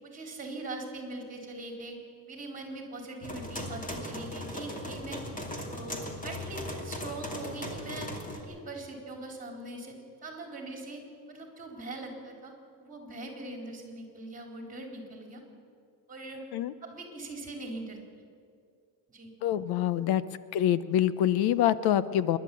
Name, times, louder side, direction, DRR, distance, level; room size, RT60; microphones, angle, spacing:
voice 1, 0.0-2.0 2.3-5.2 5.7-10.0 10.2-11.0 11.3-12.5 12.8-15.4 16.1-16.5 16.8-18.0 19.1-19.3, right 2 dB, 20° right, 3 dB, 4.1 m, -41 dB
sound 1, 3.2-8.4, left 1 dB, 20° left, 2.6 m, -38 dB
voice 2, 19.4-20.2 20.5-22.4, left 11 dB, 70° left, 16 dB, 0.8 m, -25 dB
27.5 x 11.5 x 8.6 m, 2.3 s
cardioid pair, 145°, 40 cm